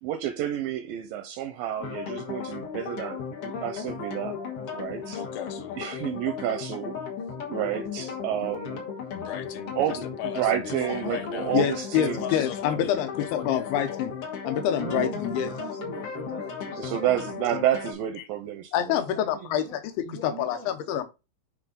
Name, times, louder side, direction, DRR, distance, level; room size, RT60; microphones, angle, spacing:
voice 1, 0.0-4.4 4.7-5.2 5.7-7.0 7.5-8.8 9.8-12.5 16.8-18.9, right 11 dB, 80° right, 2.2 m, -30 dB
sound 1, 1.8-17.9, left 6 dB, 50° left, 1.9 m, -35 dB
voice 2, 5.0-5.8 9.1-11.6 12.0-14.0, left 11 dB, 70° left, 2.3 m, -38 dB
voice 3, 11.5-14.1 14.5-15.5 18.7-19.8 20.1-21.1, left 10 dB, 85° left, 2.8 m, -26 dB
voice 4, 14.8-17.4 18.9-20.7, right 4 dB, 40° right, 1.2 m, -41 dB
9.6 x 3.4 x 3.8 m
omnidirectional pair, 4.4 m